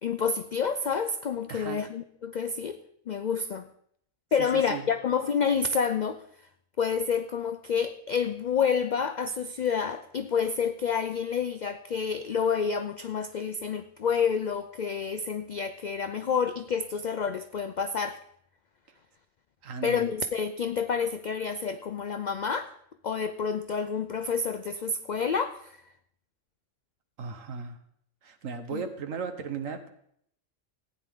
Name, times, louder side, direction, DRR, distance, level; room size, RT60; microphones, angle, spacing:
voice 1, 0.0-2.8 3.1-3.7 4.3-6.2 6.8-18.2 19.8-22.7 23.0-25.8 28.7-28.8, left 6 dB, 90° left, 10 dB, 0.4 m, -29 dB
voice 2, 1.5-1.8 4.4-4.9 19.6-20.1 27.2-27.8 28.2-29.9, right 6 dB, 85° right, 8 dB, 1.4 m, -36 dB
15.0 x 9.3 x 3.6 m, 0.68 s
omnidirectional pair, 1.3 m